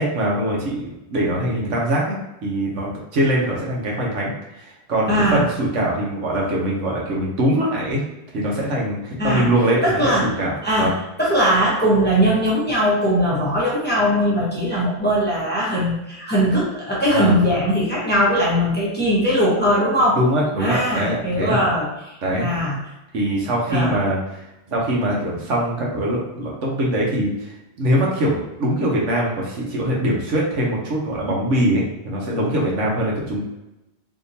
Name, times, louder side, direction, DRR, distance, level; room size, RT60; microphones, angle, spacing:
voice 1, 0.0-4.3 4.6-8.0 8.3-10.9 17.1-17.4 20.2-21.6 22.2-22.5 23.1-24.4 24.7-33.4, right 1 dB, 75° right, -3 dB, 1.2 m, -22 dB
voice 2, 5.1-5.4 9.2-9.5 9.8-10.3 10.6-20.2 20.6-22.8 23.7-24.0, equal, 10° left, -7 dB, 0.9 m, -20 dB
3.6 x 2.8 x 2.7 m, 0.93 s
omnidirectional pair, 1.3 m